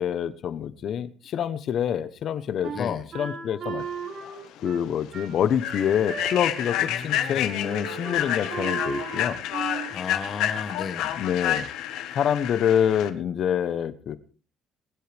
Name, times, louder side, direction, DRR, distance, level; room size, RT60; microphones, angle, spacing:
voice 1, 0.0-3.8 4.6-9.4 11.2-11.7 12.1-14.2, left 9 dB, 50° left, 1.1 m, -26 dB
Wind instrument woodwind instrument, 2.6-6.9 7.1-7.3 7.6-9.9, right 5 dB, 50° right, 6.1 m, -36 dB
voice 2, 2.7-3.1 6.9-7.4 9.9-11.1, left 5 dB, 35° left, 1.4 m, -35 dB
Human voice / Train, 4.2-4.4 4.8-5.0 5.5-13.1, left 11 dB, 85° left, 1.7 m, -29 dB
22.0 x 11.5 x 3.5 m
cardioid pair, 145°, 0 cm